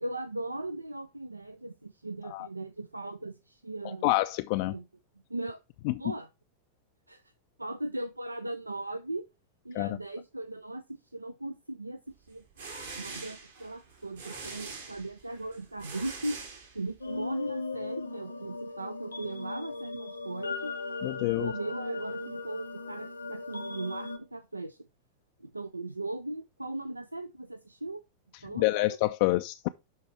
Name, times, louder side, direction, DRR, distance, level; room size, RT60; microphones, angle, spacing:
voice 1, 0.0-4.2 4.7-4.8 5.3-5.6 6.0-6.3 7.1-7.3 7.6-9.3 9.6-12.4 12.9-16.4 16.7-20.7 21.3-24.9 25.4-28.0 28.4-29.0, right 2 dB, 85° right, 0.4 m, -38 dB
voice 2, 4.0-4.7 5.8-5.9 9.7-10.0 21.0-21.5 28.6-29.7, left 20 dB, 45° left, 0.3 m, -27 dB
sound 1, 12.3-17.2, right 4 dB, 65° right, 2.4 m, -44 dB
sound 2, 17.0-24.2, left 3 dB, 80° left, 0.9 m, -38 dB
11.0 x 4.1 x 3.2 m
figure-of-eight pair, 90°, 0 cm